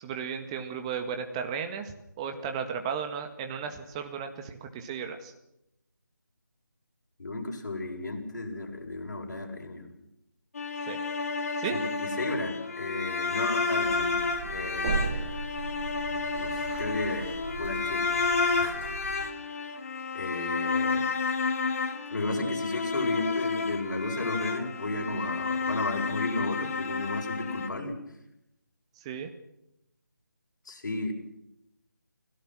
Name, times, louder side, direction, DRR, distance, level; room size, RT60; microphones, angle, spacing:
voice 1, 0.0-5.3 10.8-11.0 11.6-11.8 29.0-29.3, right 7 dB, 15° right, 6 dB, 1.9 m, -35 dB
voice 2, 7.2-9.9 11.7-14.2 14.5-15.3 16.3-17.3 17.5-18.0 18.6-18.8 20.1-21.0 22.1-28.0 30.7-31.1, left 2 dB, 60° left, 0 dB, 7.8 m, -34 dB
sound 1, 10.5-27.7, left 4 dB, 45° left, 2.4 m, -31 dB
sound 2, 13.8-19.3, right 5 dB, 35° right, 1.6 m, -37 dB
29.5 x 17.0 x 6.3 m, 0.83 s
figure-of-eight pair, 160°, 11 cm